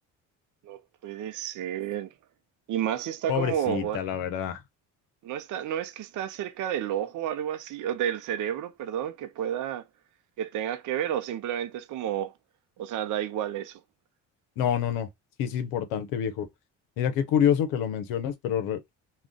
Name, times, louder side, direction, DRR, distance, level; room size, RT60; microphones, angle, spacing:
voice 1, 0.6-2.1 2.7-4.0 5.2-9.9 10.4-12.3 12.8-13.8, right 10 dB, 60° right, 0.6 m, -31 dB
voice 2, 3.3-4.6 14.6-15.1 15.4-16.5 17.0-18.8, left 9 dB, 80° left, 0.7 m, -27 dB
2.4 x 2.3 x 3.6 m
supercardioid pair, 65°, 35 cm